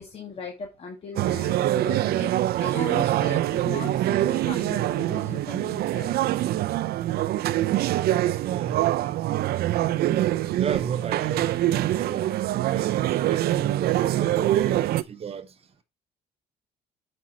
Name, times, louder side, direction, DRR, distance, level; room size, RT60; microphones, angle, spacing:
voice 1, 0.0-6.1, left 5 dB, 35° left, 2.2 m, -38 dB
sound 1, 1.2-15.0, right 14 dB, 65° right, 0.5 m, -24 dB
voice 2, 8.4-8.9 10.5-12.4 12.7-13.0 13.3-15.5, right 7 dB, 35° right, 1.0 m, -34 dB
7.5 x 5.3 x 4.2 m
cardioid pair, 110°, 17 cm